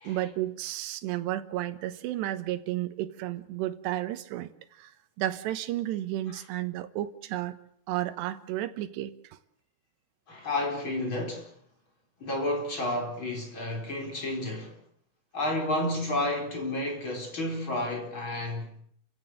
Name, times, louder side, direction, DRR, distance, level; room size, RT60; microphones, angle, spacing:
voice 1, 0.0-4.9 5.2-7.6 7.9-9.4, right 14 dB, 75° right, 3.3 m, -32 dB
voice 2, 10.3-11.5 12.2-14.8 15.3-18.7, left 1 dB, 30° left, 4.8 m, -31 dB
29.5 x 16.0 x 7.9 m
omnidirectional pair, 5.0 m